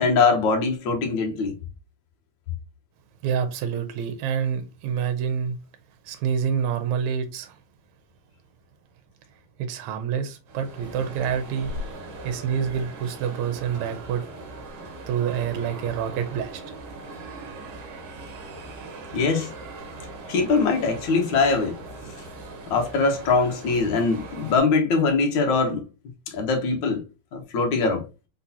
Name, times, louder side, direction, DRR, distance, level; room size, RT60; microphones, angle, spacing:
voice 1, 0.0-1.5 19.1-19.5 20.3-21.8 22.7-25.8 26.3-27.0 27.3-28.0, left 4 dB, 90° left, 1.0 m, -22 dB
voice 2, 3.2-5.6 6.1-7.6 9.6-11.7 12.2-14.2 15.1-16.6, right 7 dB, 75° right, 2.0 m, -27 dB
sound 1, 10.5-24.6, right 2 dB, 60° right, 1.8 m, -39 dB
4.6 x 4.0 x 2.8 m
omnidirectional pair, 3.5 m